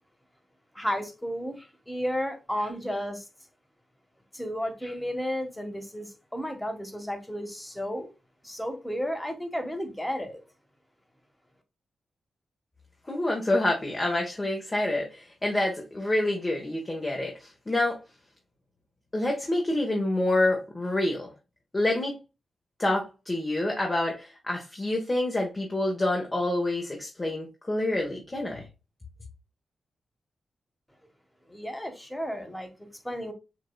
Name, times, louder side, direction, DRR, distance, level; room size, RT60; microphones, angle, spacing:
voice 1, 0.7-3.3 4.3-8.1 8.4-10.4 31.5-33.3, equal, 10° left, 1.5 m, -33 dB
voice 2, 13.1-18.0 19.1-21.3 21.7-22.1 22.8-28.6, left 1 dB, 25° left, 1.3 m, -27 dB
7.4 x 2.7 x 2.3 m
cardioid pair, 50°, 0 cm